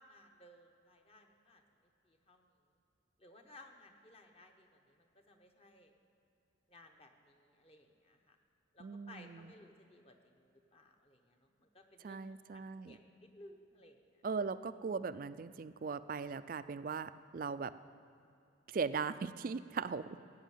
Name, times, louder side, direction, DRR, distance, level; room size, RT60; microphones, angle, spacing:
voice 1, 0.0-1.6 2.0-2.5 3.2-5.9 6.7-8.4 8.7-12.3 12.5-14.0, left 1 dB, 30° left, 4 dB, 0.9 m, -60 dB
voice 2, 8.8-9.5 12.0-13.0 14.2-17.7 18.7-20.2, right 5 dB, 45° right, 14 dB, 0.3 m, -39 dB
15.5 x 6.3 x 9.1 m, 2.7 s
head